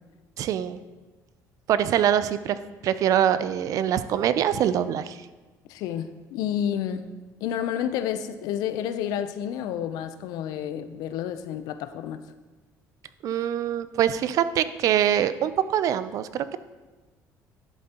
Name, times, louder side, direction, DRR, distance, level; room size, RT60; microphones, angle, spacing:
voice 1, 0.4-0.8 1.7-2.6 2.8-5.3 13.2-16.6, right 10 dB, 60° right, 13 dB, 0.4 m, -24 dB
voice 2, 5.7-7.1 7.4-12.2, left 9 dB, 80° left, 10 dB, 0.5 m, -30 dB
11.0 x 7.8 x 2.9 m, 1.3 s
cardioid pair, 95°, 6 cm